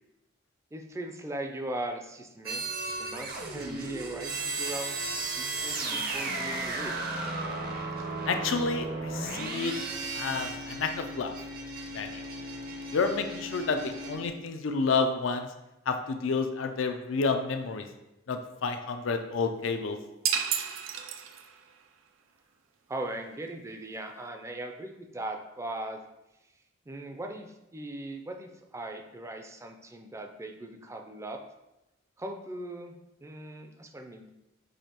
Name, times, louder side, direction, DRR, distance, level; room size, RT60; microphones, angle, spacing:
voice 1, 0.7-7.0 22.9-26.0 26.9-31.4 32.2-34.3, right 1 dB, 15° right, 5 dB, 0.4 m, -39 dB
sound 1, 2.4-14.3, right 2 dB, 50° right, 0.6 m, -35 dB
voice 2, 8.3-9.7 10.2-11.3 11.9-12.3 12.9-15.5 15.9-17.9 18.3-20.0, left 4 dB, 85° left, 6 dB, 0.5 m, -30 dB
sound 2, 20.2-21.7, right 8 dB, 90° right, 0.4 m, -31 dB
6.3 x 2.8 x 2.9 m, 0.93 s
head